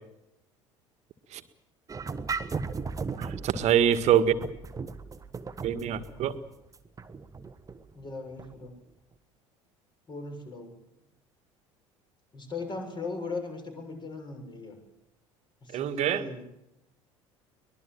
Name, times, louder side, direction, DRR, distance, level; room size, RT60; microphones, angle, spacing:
sound 1, 1.9-8.6, right 4 dB, 20° right, 1.4 m, -37 dB
voice 1, 3.2-4.3 5.6-6.3 15.7-16.2, right 9 dB, 45° right, 10 dB, 1.8 m, -24 dB
voice 2, 7.9-8.7 10.1-10.8 12.3-14.8 15.6-16.4, left 3 dB, 25° left, 5 dB, 6.9 m, -38 dB
23.5 x 20.5 x 7.5 m, 0.87 s
figure-of-eight pair, 65°, 17 cm